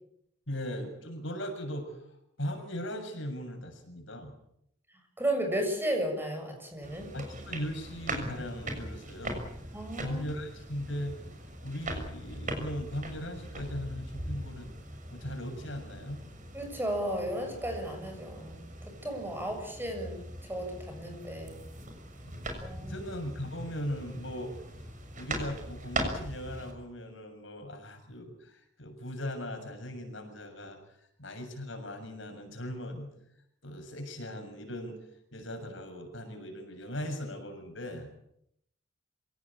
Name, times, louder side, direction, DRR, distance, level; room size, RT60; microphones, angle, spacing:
voice 1, 0.5-2.0 2.4-4.3 7.1-9.5 10.0-11.2 11.6-14.7 15.1-16.2 22.2-24.6 25.2-33.1 33.6-35.0 35.3-38.1, equal, 70° left, 4 dB, 7.1 m, -39 dB
voice 2, 5.2-7.1 9.7-10.2 16.5-21.6 22.6-23.0, right 1 dB, 10° right, 4 dB, 7.1 m, -34 dB
sound 1, 6.8-26.7, right 1 dB, 40° right, 6.5 m, -40 dB
26.5 x 18.0 x 8.7 m, 0.75 s
head